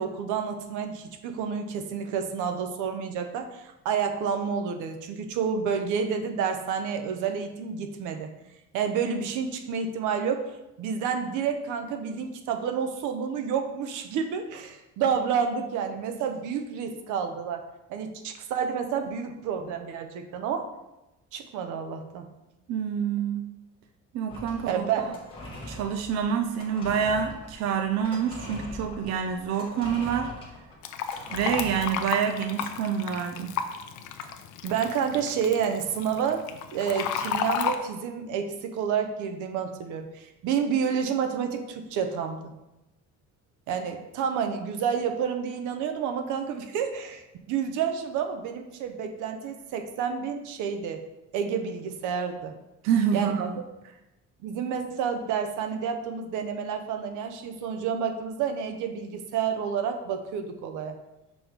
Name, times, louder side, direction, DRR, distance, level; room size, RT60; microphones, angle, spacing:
voice 1, 0.0-8.3 8.7-10.5 10.8-17.6 17.9-20.7 21.3-22.3 24.7-25.1 34.6-36.4 36.7-42.5 43.7-51.0 51.3-52.5 53.1-53.4 54.4-61.0, right 7 dB, 90° right, 6 dB, 0.8 m, -29 dB
voice 2, 22.7-23.5 24.1-24.8 25.7-30.3 31.3-33.5 52.8-53.6, right 7 dB, 60° right, 5 dB, 0.5 m, -27 dB
sound 1, 24.3-32.2, left 1 dB, 15° left, 1.1 m, -42 dB
Fill (with liquid), 30.8-37.8, left 8 dB, 80° left, 0.6 m, -33 dB
6.1 x 3.1 x 5.0 m, 0.95 s
cardioid pair, 175°, 30 cm